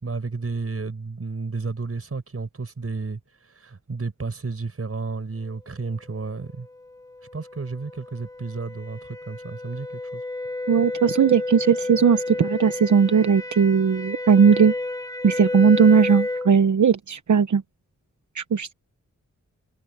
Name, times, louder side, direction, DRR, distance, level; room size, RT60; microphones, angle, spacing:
voice 1, 0.0-6.7 7.3-10.2, right 4 dB, 50° right, 5.8 m, -32 dB
sound 1, 6.6-16.6, left 2 dB, 10° left, 1.1 m, -31 dB
voice 2, 10.7-14.7 15.2-17.6 18.3-18.7, right 6 dB, 70° right, 1.0 m, -18 dB
wide cardioid pair, 75°, 30 cm